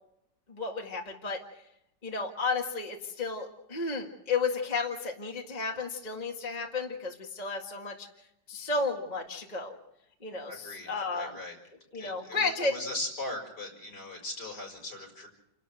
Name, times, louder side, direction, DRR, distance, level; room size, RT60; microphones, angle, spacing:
voice 1, 0.5-1.4 2.0-8.1 8.5-9.8 10.2-11.4 11.9-12.7, left 4 dB, 25° left, 0 dB, 2.0 m, -33 dB
voice 2, 10.4-11.6 11.9-15.3, left 1 dB, 60° left, 1 dB, 6.3 m, -39 dB
29.5 x 12.0 x 7.9 m, 0.82 s
omnidirectional pair, 2.0 m